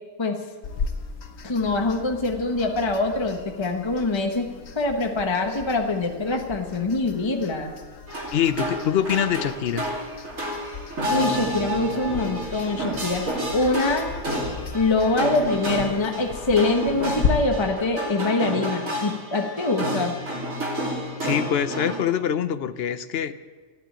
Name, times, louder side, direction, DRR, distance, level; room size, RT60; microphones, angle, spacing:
sound 1, 0.6-17.3, left 6 dB, 75° left, 1.5 m, -36 dB
voice 1, 1.4-4.5 4.7-7.7 11.1-13.3 13.5-14.1 14.7-20.1, left 3 dB, 20° left, 3 dB, 1.1 m, -24 dB
sound 2, 8.1-22.0, right 1 dB, 85° right, 3.6 m, -30 dB
voice 2, 8.3-9.9 21.2-23.3, left 9 dB, 55° left, 12 dB, 0.8 m, -24 dB
14.5 x 9.4 x 8.7 m, 1.5 s
omnidirectional pair, 1.4 m